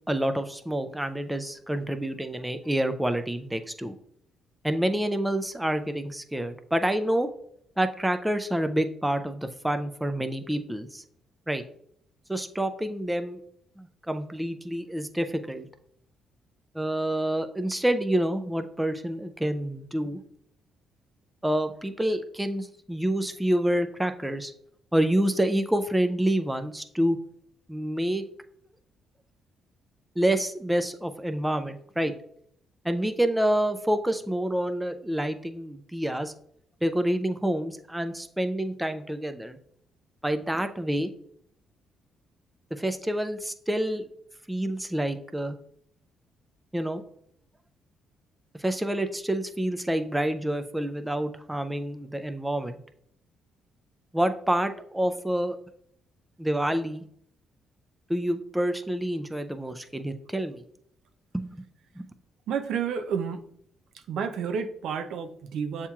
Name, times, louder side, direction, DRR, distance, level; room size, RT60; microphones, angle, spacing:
voice 1, 0.1-3.9 4.6-7.3 7.8-11.0 11.5-11.6 12.3-13.4 13.8-15.7 16.7-20.2 21.4-24.5 24.9-27.2 27.7-28.3 30.2-32.1 32.8-36.3 36.8-39.6 40.2-41.1 42.7-44.1 44.5-45.6 46.7-47.0 48.6-52.8 54.1-55.6 56.4-57.0 58.1-60.6 61.3-61.5 62.0-62.1, right 1 dB, 5° right, 8 dB, 0.3 m, -28 dB
voice 2, 62.5-63.5 64.1-65.9, right 6 dB, 75° right, 7 dB, 0.4 m, -30 dB
7.0 x 2.9 x 2.3 m, 0.68 s
cardioid pair, 90°, 0 cm